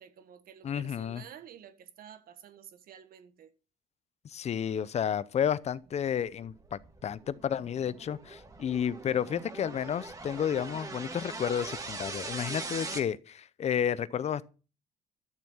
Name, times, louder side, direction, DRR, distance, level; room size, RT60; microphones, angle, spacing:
voice 1, 0.0-3.5, right 9 dB, 60° right, 1.5 m, -51 dB
voice 2, 0.6-1.2 4.2-14.5, left 8 dB, 40° left, 0.7 m, -31 dB
sound 1, 6.3-13.0, right 3 dB, 20° right, 2.0 m, -41 dB
12.0 x 7.1 x 5.7 m
cardioid pair, 110°, 17 cm